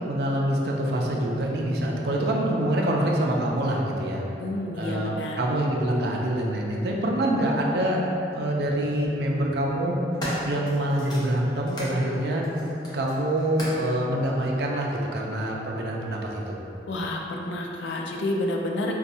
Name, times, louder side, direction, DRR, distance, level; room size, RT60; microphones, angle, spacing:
voice 1, 0.0-4.2 4.8-8.0 8.3-9.9 10.4-12.4 12.9-16.6, right 1 dB, 65° right, -1 dB, 0.4 m, -25 dB
voice 2, 4.4-5.4 16.9-18.9, left 1 dB, 80° left, 1 dB, 0.4 m, -29 dB
sound 1, 7.6-7.7 8.8-9.1 9.7-12.0 12.4-13.9 14.8-14.9, equal, 25° left, 0.6 m, -36 dB
4.1 x 2.3 x 2.6 m, 2.9 s
head